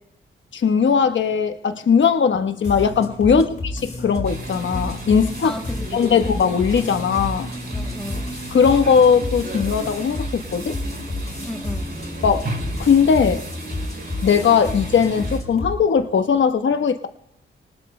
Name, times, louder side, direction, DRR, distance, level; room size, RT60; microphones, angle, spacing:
voice 1, 0.5-3.5 4.0-5.5 5.9-7.5 8.5-10.8 12.2-12.5 12.8-13.4 14.2-17.1, left 6 dB, 65° left, 7 dB, 1.1 m, -18 dB
sound 1, 2.6-15.8, left 1 dB, 35° left, 4.2 m, -30 dB
sound 2, 4.2-15.4, right 2 dB, 50° right, 4.7 m, -36 dB
voice 2, 5.4-6.2 7.7-8.3 11.4-11.9, left 1 dB, 5° left, 4 dB, 1.6 m, -34 dB
28.5 x 19.5 x 2.2 m, 0.79 s
cardioid pair, 70°, 21 cm